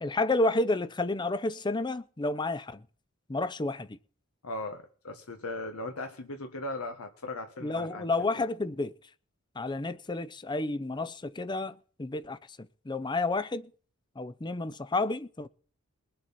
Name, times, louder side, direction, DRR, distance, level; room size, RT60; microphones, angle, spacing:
voice 1, 0.0-2.8 3.3-4.0 7.6-8.9 9.6-13.7 14.2-15.5, left 2 dB, 20° left, 0.6 m, -30 dB
voice 2, 4.4-8.1, left 2 dB, 85° left, 1.5 m, -38 dB
21.5 x 7.7 x 4.2 m
head